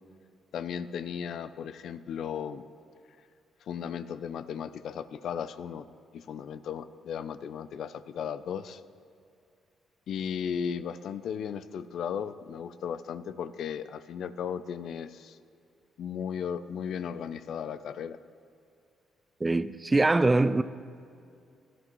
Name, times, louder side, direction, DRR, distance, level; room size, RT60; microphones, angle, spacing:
voice 1, 0.5-2.6 3.7-5.9 6.1-8.8 10.1-15.4 16.0-18.2, left 7 dB, 70° left, 0.4 m, -36 dB
voice 2, 19.4-20.6, right 2 dB, 20° right, 0.4 m, -23 dB
17.0 x 12.0 x 3.0 m
cardioid pair, 90°, 0 cm